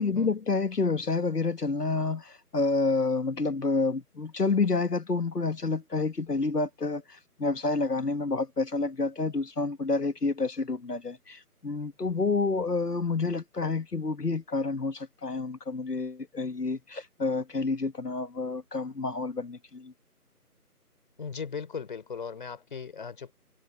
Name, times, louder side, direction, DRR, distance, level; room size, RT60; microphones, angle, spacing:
voice 1, 0.0-19.9, left 3 dB, 80° left, 1.8 m, -29 dB
voice 2, 21.2-23.3, left 6 dB, 30° left, 4.1 m, -38 dB
figure-of-eight pair, 160°, 46 cm